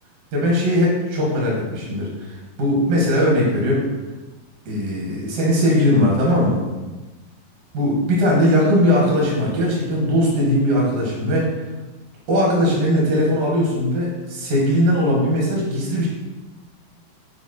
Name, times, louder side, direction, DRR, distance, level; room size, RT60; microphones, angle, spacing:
voice 1, 0.3-3.9 4.7-6.6 7.7-11.5 12.3-16.1, equal, 70° right, -3 dB, 3.6 m, -19 dB
11.5 x 4.5 x 4.4 m, 1.2 s
omnidirectional pair, 4.2 m